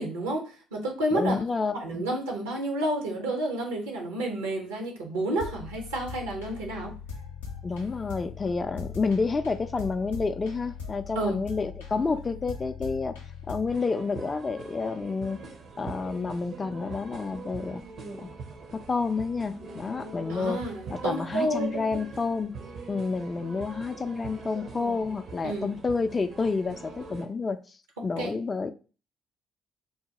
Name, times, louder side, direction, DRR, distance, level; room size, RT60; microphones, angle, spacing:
voice 1, 0.0-1.4 1.7-6.9 11.1-11.4 20.3-21.9 25.4-25.8 28.0-28.3, right 1 dB, 80° right, 1 dB, 0.8 m, -30 dB
voice 2, 1.1-2.0 7.6-13.2 13.5-15.4 15.8-17.8 18.1-18.3 18.7-20.6 20.9-22.5 22.9-28.7, left 4 dB, 30° left, 9 dB, 0.3 m, -29 dB
sound 1, 5.4-13.8, left 6 dB, 85° left, 0.5 m, -40 dB
sound 2, 13.7-27.3, right 4 dB, 55° right, 0.6 m, -43 dB
3.8 x 2.1 x 2.8 m, 0.35 s
hypercardioid pair, 50°, 0 cm